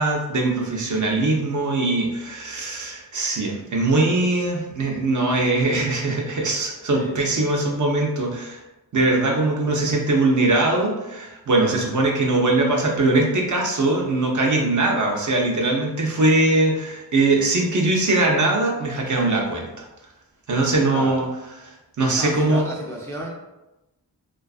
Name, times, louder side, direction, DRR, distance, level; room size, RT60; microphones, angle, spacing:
voice 1, 0.0-8.6 8.9-19.8 20.5-21.3 21.6-22.6, right 2 dB, 50° right, 0 dB, 0.6 m, -21 dB
voice 2, 6.9-7.4 20.9-21.2 22.1-23.3, equal, 5° left, -2 dB, 0.3 m, -34 dB
2.4 x 2.4 x 2.3 m, 0.98 s
wide cardioid pair, 85°, 39 cm